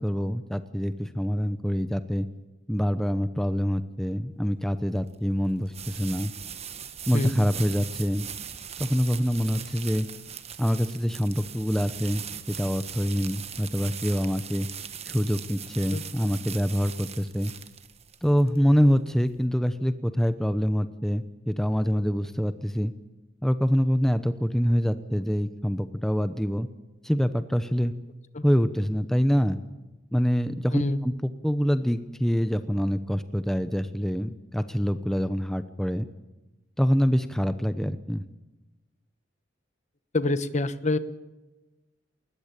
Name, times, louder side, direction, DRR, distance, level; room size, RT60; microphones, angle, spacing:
voice 1, 0.0-2.3 2.7-6.3 7.1-8.3 8.8-10.1 10.6-12.2 12.6-14.7 15.1-17.5 18.2-22.9 23.4-26.7 27.0-27.9 28.4-29.6 30.1-36.1 36.8-38.2, equal, ahead, 11 dB, 0.8 m, -25 dB
sound 1, 4.5-19.4, right 8 dB, 35° right, 1.4 m, -40 dB
voice 2, 40.1-41.0, left 2 dB, 40° left, 13 dB, 1.2 m, -26 dB
20.5 x 19.5 x 8.9 m, 1.1 s
head